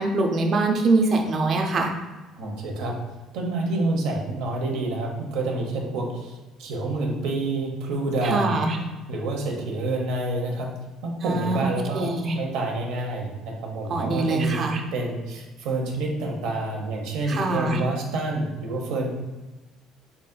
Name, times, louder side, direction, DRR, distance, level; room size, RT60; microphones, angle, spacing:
voice 1, 0.0-1.9 8.2-8.8 11.2-12.3 13.9-14.8 17.3-17.8, right 2 dB, 45° right, 2 dB, 0.5 m, -23 dB
voice 2, 2.4-2.9 3.3-8.6 9.1-10.7 11.0-14.7 14.9-19.1, right 2 dB, 85° right, 0 dB, 0.8 m, -28 dB
3.9 x 3.7 x 2.2 m, 1.2 s
cardioid pair, 130°, 0 cm